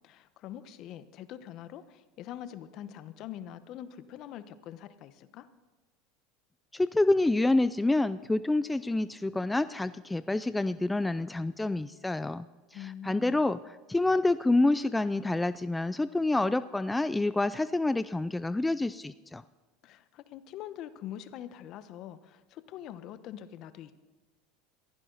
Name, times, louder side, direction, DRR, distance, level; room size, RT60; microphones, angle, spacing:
voice 1, 0.0-5.5 12.7-13.4 19.8-23.9, left 11 dB, 55° left, 12 dB, 1.1 m, -44 dB
voice 2, 6.7-12.5 12.7-19.4, left 2 dB, 10° left, 14 dB, 0.4 m, -27 dB
22.5 x 15.5 x 4.0 m, 1.3 s
supercardioid pair, 105°, 0 cm